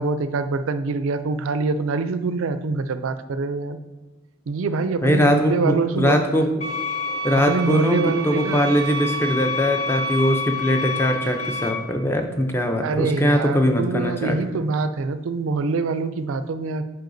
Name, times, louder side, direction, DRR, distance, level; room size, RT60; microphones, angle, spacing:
voice 1, 0.0-3.8 4.5-6.2 7.5-8.6 12.8-16.8, right 4 dB, 70° right, 12 dB, 0.4 m, -24 dB
voice 2, 5.0-6.5 7.2-14.4, equal, 10° left, 4 dB, 0.4 m, -21 dB
sound 1, 6.6-11.7, left 2 dB, 30° left, 1.1 m, -28 dB
7.7 x 4.8 x 2.6 m, 1.2 s
head